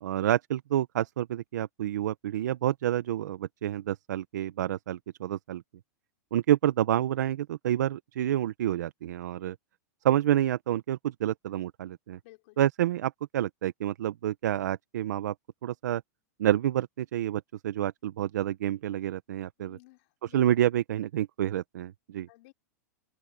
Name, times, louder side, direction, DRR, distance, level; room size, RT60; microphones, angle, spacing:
voice 1, 0.0-5.6 6.3-9.6 10.0-12.2 12.6-15.3 15.6-16.0 16.4-19.8 20.2-22.3, right 12 dB, 80° right, 0.8 m, -28 dB
voice 2, 12.2-12.6 19.6-20.4 22.3-22.5, left 22 dB, 50° left, 5.2 m, -56 dB
open air
supercardioid pair, 160°, 9 cm